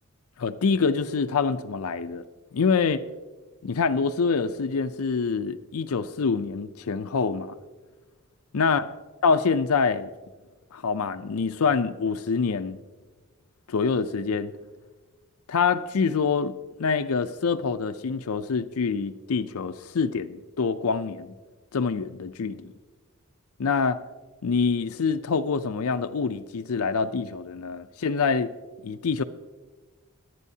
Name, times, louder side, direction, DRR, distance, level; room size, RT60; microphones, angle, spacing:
voice 1, 0.4-2.2 2.5-3.0 3.6-7.5 8.5-8.9 9.2-10.1 10.7-12.8 13.7-14.5 15.5-21.3 21.7-22.7 23.6-24.0 24.4-28.5 28.8-29.2, left 5 dB, 70° left, 0.5 m, -25 dB
24.0 x 9.1 x 2.8 m
head